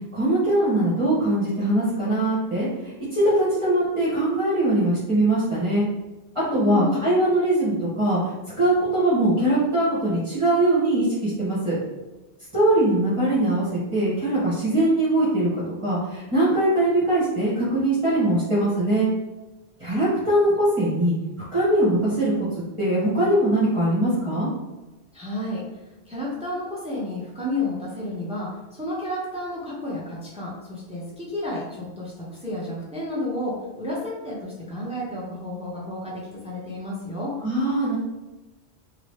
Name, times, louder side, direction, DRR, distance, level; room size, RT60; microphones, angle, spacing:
voice 1, 0.1-5.9 6.5-11.8 12.5-13.7 13.9-19.1 19.8-21.1 21.5-22.3 22.8-24.5 37.4-38.0, right 1 dB, 30° right, -10 dB, 1.2 m, -21 dB
voice 2, 6.4-7.1 25.1-25.6 26.1-37.3, left 1 dB, 5° right, -5 dB, 0.7 m, -31 dB
2.9 x 2.7 x 3.2 m, 1.1 s
omnidirectional pair, 1.1 m